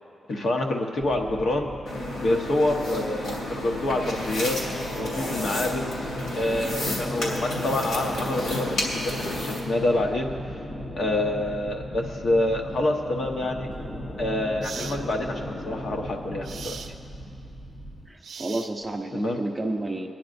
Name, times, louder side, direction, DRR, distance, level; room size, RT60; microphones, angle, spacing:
voice 1, 0.3-1.7 2.2-4.6 4.9-5.8 6.4-10.3 11.0-13.7 14.2-16.7 19.1-19.4, left 1 dB, 55° left, 2 dB, 1.0 m, -27 dB
sound 1, 1.0-18.1, equal, 30° left, 0.8 m, -38 dB
sound 2, 1.9-9.6, left 1 dB, 75° left, 2.7 m, -31 dB
sound 3, 13.7-13.9 14.6-15.0 16.4-16.9 18.2-19.0, right 6 dB, 75° right, 0.5 m, -39 dB
voice 2, 18.1-20.2, right 2 dB, 15° right, 3 dB, 0.6 m, -31 dB
24.5 x 10.0 x 2.6 m, 2.6 s
wide cardioid pair, 175°, 0 cm